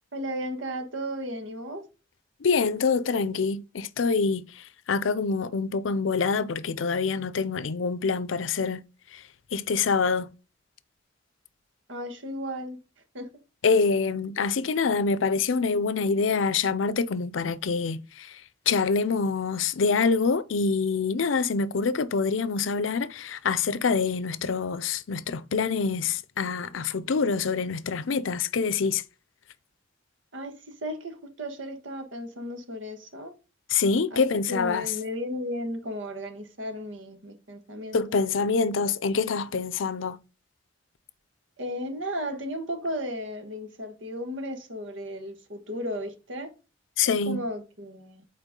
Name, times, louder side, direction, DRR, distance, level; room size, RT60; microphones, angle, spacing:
voice 1, 0.1-1.9 11.9-12.8 13.1-13.3 30.3-33.4 34.1-34.2 34.5-38.2 41.6-46.5 47.0-48.3, equal, 80° right, 1.5 m, -35 dB
voice 2, 2.4-8.8 9.1-9.2 9.5-10.3 13.6-18.4 18.7-29.0 33.7-34.8 37.9-40.2 47.0-47.4, left 5 dB, 90° left, 0.5 m, -26 dB
8.1 x 4.4 x 3.7 m
head